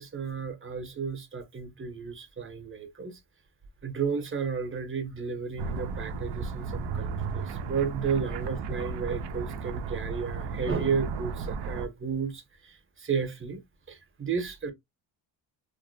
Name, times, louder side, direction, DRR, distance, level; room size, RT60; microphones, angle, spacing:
voice 1, 0.0-3.2 3.8-14.7, right 6 dB, 25° right, 0.8 m, -33 dB
sound 1, 5.6-11.9, right 5 dB, 60° right, 0.5 m, -34 dB
2.6 x 2.1 x 2.5 m
cardioid pair, 75°, 48 cm